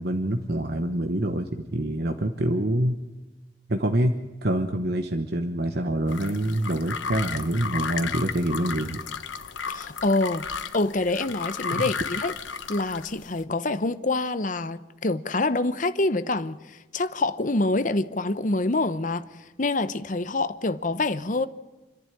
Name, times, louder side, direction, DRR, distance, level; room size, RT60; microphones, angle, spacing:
voice 1, 0.0-3.0 3.7-9.0 11.7-11.9, right 1 dB, 55° right, 1.1 m, -26 dB
sound 1, 6.1-13.4, left 6 dB, 90° left, 1.1 m, -34 dB
voice 2, 9.7-10.5 10.7-12.3 12.7-21.5, left 2 dB, 45° left, 0.9 m, -26 dB
28.0 x 11.0 x 9.9 m
head